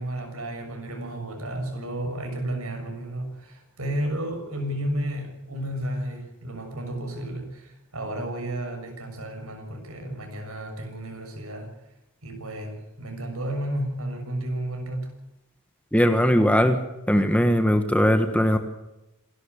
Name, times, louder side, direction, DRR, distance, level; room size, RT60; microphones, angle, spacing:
voice 1, 0.0-11.7 12.2-15.1, right 1 dB, 75° right, 3 dB, 6.7 m, -32 dB
voice 2, 15.9-16.8 17.1-18.6, equal, 5° left, 8 dB, 1.3 m, -19 dB
27.0 x 12.0 x 8.3 m, 0.92 s
head